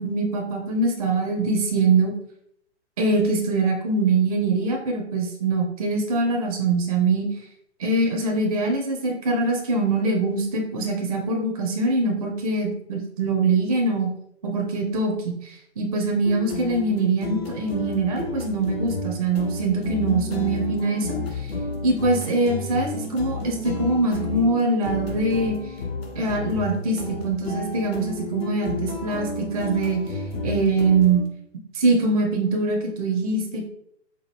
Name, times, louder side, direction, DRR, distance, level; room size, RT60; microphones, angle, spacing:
voice 1, 0.0-2.1 3.0-7.3 7.8-14.1 14.4-21.5 21.8-25.6 26.2-30.0 30.4-31.2 31.7-33.7, right 3 dB, 35° right, 1 dB, 0.5 m, -23 dB
sound 1, 16.2-31.3, left 3 dB, 55° left, 0.8 m, -32 dB
4.4 x 2.2 x 3.1 m, 0.71 s
figure-of-eight pair, 130°, 36 cm